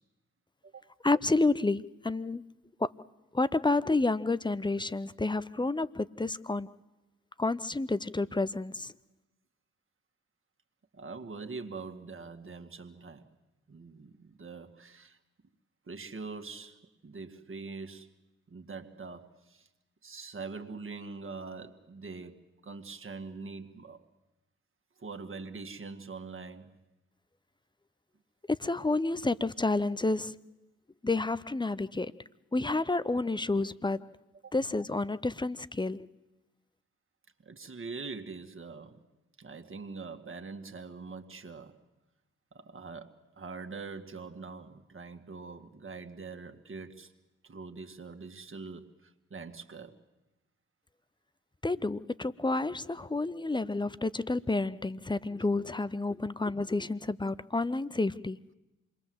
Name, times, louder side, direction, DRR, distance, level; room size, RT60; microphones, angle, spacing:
voice 1, 1.0-2.5 2.8-2.9 3.3-6.8 7.4-8.9 28.5-30.4 31.0-32.2 32.5-34.2 34.5-36.1 51.6-58.4, left 2 dB, 15° left, 0.8 m, -30 dB
voice 2, 10.9-13.4 13.7-15.2 15.9-18.1 18.5-19.7 20.0-24.1 25.0-26.8 34.4-34.5 37.4-39.0 39.4-41.8 42.5-47.1 47.4-50.0, right 4 dB, 45° right, 2.2 m, -43 dB
26.5 x 21.5 x 7.9 m
supercardioid pair, 45°, 30 cm